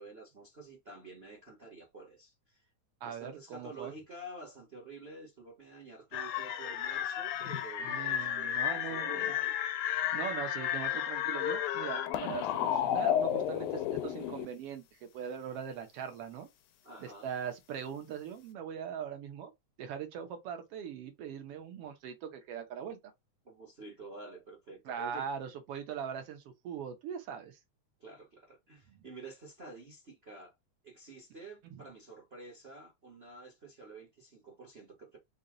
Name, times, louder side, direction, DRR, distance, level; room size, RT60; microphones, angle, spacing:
voice 1, 0.0-2.7 3.0-9.5 16.8-17.3 23.4-25.3 28.0-30.5 30.8-35.2, right 3 dB, 40° right, 0.8 m, -49 dB
voice 2, 3.0-3.9 7.8-9.3 10.1-16.5 17.0-19.5 19.8-23.0 24.8-27.6 28.9-29.1, right 8 dB, 65° right, 1.6 m, -41 dB
sound 1, 6.1-14.5, left 10 dB, 85° left, 2.1 m, -32 dB
5.5 x 2.3 x 3.8 m
omnidirectional pair, 3.4 m